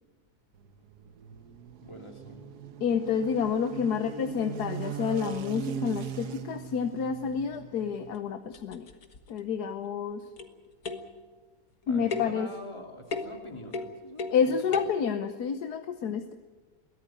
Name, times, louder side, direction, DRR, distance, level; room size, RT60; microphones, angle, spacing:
sound 1, 0.6-8.2, right 8 dB, 80° right, 1.6 m, -40 dB
voice 1, 1.8-2.5 11.9-14.8, left 1 dB, 15° left, 2 dB, 3.0 m, -45 dB
voice 2, 2.8-8.9 9.3-10.2 11.9-12.5 14.3-16.3, left 7 dB, 80° left, 8 dB, 1.5 m, -29 dB
sound 2, 7.5-7.6 8.1-8.2 8.5-9.4 10.4-10.6 10.8-11.2 12.1-12.4 13.1-13.4 13.7-14.4 14.7-15.0, left 3 dB, 65° left, 2.0 m, -35 dB
22.5 x 16.0 x 9.1 m, 1.4 s
omnidirectional pair, 1.7 m